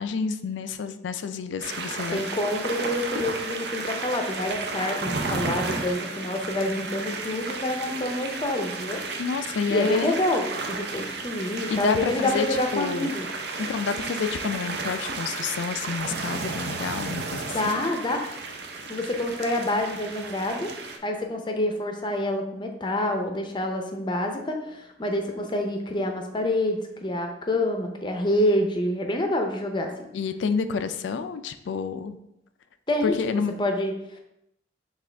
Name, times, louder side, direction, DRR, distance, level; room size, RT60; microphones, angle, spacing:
voice 1, 0.0-2.2 9.2-10.2 11.7-13.1 13.6-17.7 30.1-32.2 33.0-33.5, left 5 dB, 85° left, 10 dB, 0.3 m, -29 dB
sound 1, 1.6-21.0, right 3 dB, 60° right, 0.5 m, -33 dB
voice 2, 2.1-9.0 9.7-13.3 17.5-18.4 18.9-20.7 21.0-30.1 32.9-34.2, left 1 dB, 25° left, 3 dB, 0.5 m, -27 dB
6.0 x 2.4 x 3.3 m, 0.83 s
head